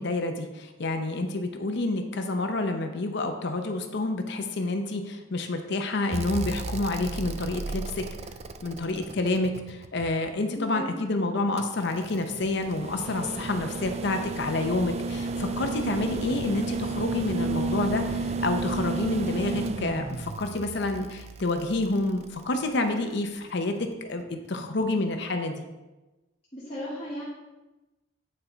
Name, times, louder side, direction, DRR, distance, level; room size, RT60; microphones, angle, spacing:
voice 1, 0.0-8.0 8.6-25.6, left 2 dB, 55° left, 6 dB, 0.7 m, -28 dB
sound 1, 6.1-10.3 11.6-22.8 24.3-24.4, right 3 dB, 30° right, 0.3 m, -33 dB
voice 2, 10.5-10.9 26.5-27.2, equal, 25° left, -9 dB, 1.4 m, -36 dB
9.3 x 4.5 x 3.9 m, 1.1 s
head